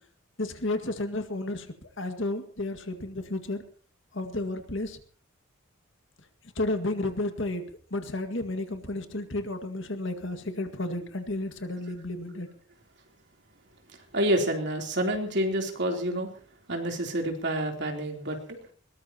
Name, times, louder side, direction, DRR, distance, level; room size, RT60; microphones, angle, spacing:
voice 1, 0.4-1.7 2.0-3.6 4.1-5.0 6.6-7.6 7.9-12.5, left 2 dB, 60° left, 7 dB, 2.0 m, -32 dB
voice 2, 11.9-12.4 14.1-16.4 16.7-18.6, right 1 dB, 55° right, 2 dB, 3.6 m, -29 dB
21.5 x 19.5 x 3.0 m, 0.42 s
head